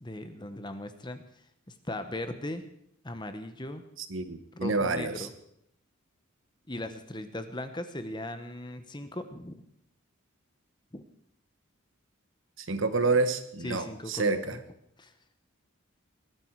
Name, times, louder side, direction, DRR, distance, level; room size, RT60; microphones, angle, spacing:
voice 1, 0.0-1.2 1.9-2.7 3.0-3.8 4.6-5.3 6.7-9.6 10.9-11.0 13.6-14.6 15.0-15.1, left 1 dB, 20° left, 9 dB, 1.2 m, -38 dB
voice 2, 4.1-5.3 12.6-14.6, right 3 dB, 65° right, 10 dB, 1.3 m, -28 dB
20.5 x 12.5 x 4.8 m, 0.73 s
head